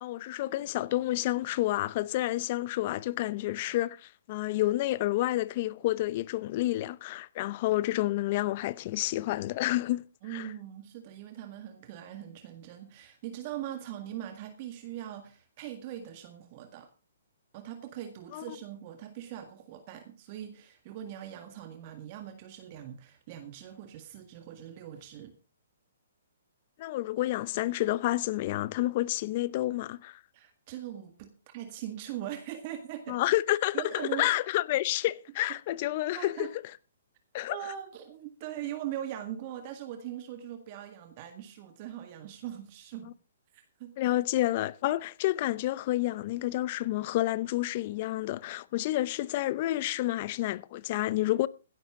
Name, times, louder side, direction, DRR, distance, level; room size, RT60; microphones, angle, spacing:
voice 1, 0.0-10.0 10.3-10.4 18.3-18.4 26.8-30.2 33.1-36.5 37.3-37.6 44.0-51.5, left 16 dB, 40° left, 0.7 m, -29 dB
voice 2, 10.2-16.9 17.5-25.3 30.3-33.2 33.7-34.3 36.1-36.5 37.5-43.1 43.5-44.0, right 11 dB, 40° right, 1.9 m, -41 dB
16.0 x 11.0 x 3.7 m
hypercardioid pair, 135°, 0 cm